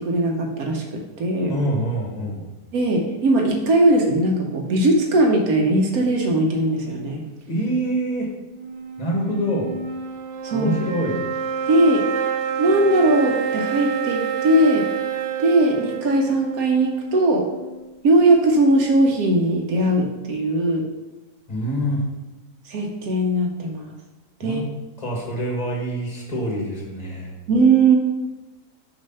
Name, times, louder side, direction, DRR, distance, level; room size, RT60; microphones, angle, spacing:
voice 1, 0.0-1.5 2.7-7.3 10.4-10.7 11.7-12.1 12.6-14.9 15.4-17.5 18.0-20.9 22.7-23.9 24.4-24.6 27.5-28.0, right 2 dB, 80° right, 2 dB, 1.3 m, -19 dB
voice 2, 1.5-2.4 7.5-8.3 9.0-9.7 10.5-11.2 21.5-22.0 24.4-24.7 25.0-27.3, right 1 dB, 30° left, -1 dB, 1.5 m, -25 dB
sound 1, 8.5-17.9, right 7 dB, 65° right, 0.9 m, -28 dB
6.3 x 3.2 x 5.5 m, 1.1 s
omnidirectional pair, 1.5 m